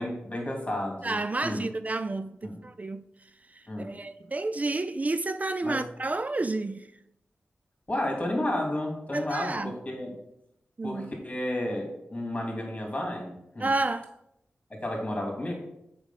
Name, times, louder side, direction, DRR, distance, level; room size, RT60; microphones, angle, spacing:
voice 1, 0.0-1.2 1.4-1.6 2.4-2.6 3.7-3.9 5.6-5.9 7.9-10.2 10.8-13.7 14.7-15.5, left 1 dB, 30° left, 2.7 m, -32 dB
voice 2, 1.0-3.1 3.5-6.9 9.1-9.8 10.8-11.1 13.6-14.1, right 2 dB, 35° right, 0.4 m, -30 dB
6.9 x 5.0 x 5.8 m
cardioid pair, 55°, 4 cm